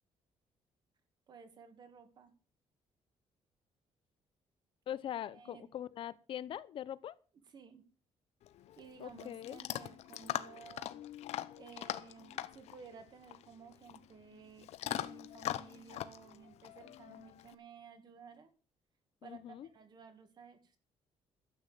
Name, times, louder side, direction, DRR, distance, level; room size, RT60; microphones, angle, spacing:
voice 1, 1.3-2.3 5.3-5.6 7.5-7.8 8.8-11.0 11.6-18.5 19.2-19.4 19.7-20.7, right 6 dB, 40° right, 2.3 m, -55 dB
voice 2, 4.9-7.1 9.0-9.6 19.2-19.7, left 11 dB, 55° left, 0.7 m, -42 dB
Chewing mastication / Dog, 8.4-17.5, left 13 dB, 75° left, 1.0 m, -42 dB
13.0 x 8.6 x 7.0 m
cardioid pair, 170°, 11 cm